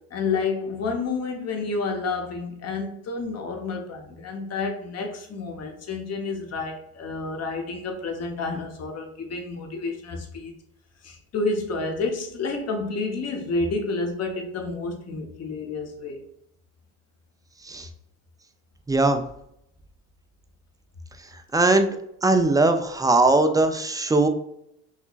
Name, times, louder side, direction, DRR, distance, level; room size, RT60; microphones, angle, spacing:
voice 1, 0.1-10.5 11.0-16.2, left 3 dB, 45° left, 3 dB, 1.0 m, -30 dB
voice 2, 18.9-19.2 21.5-21.9 22.2-24.3, right 2 dB, 10° right, 7 dB, 0.4 m, -20 dB
4.6 x 2.8 x 2.4 m, 0.76 s
supercardioid pair, 80°, 36 cm